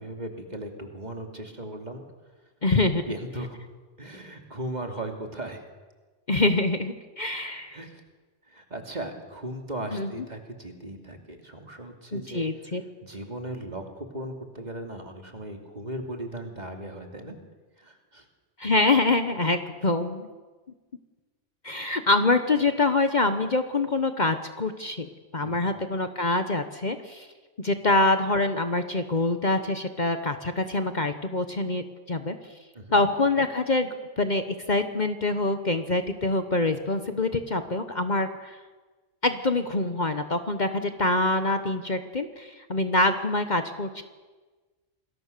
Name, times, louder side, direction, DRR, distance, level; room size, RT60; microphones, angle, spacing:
voice 1, 0.0-2.0 3.1-3.6 4.0-5.6 7.7-8.0 8.5-12.5 13.0-17.3 17.8-18.3 25.4-25.7 32.7-33.0, right 1 dB, 35° right, 4 dB, 2.8 m, -37 dB
voice 2, 2.6-3.0 6.3-7.8 9.9-10.1 12.1-12.8 18.6-20.3 21.6-25.1 25.3-27.3 27.6-32.3 32.9-38.6 39.2-44.0, left 2 dB, 40° left, 8 dB, 1.2 m, -25 dB
28.0 x 21.0 x 6.8 m, 1.3 s
omnidirectional pair, 1.2 m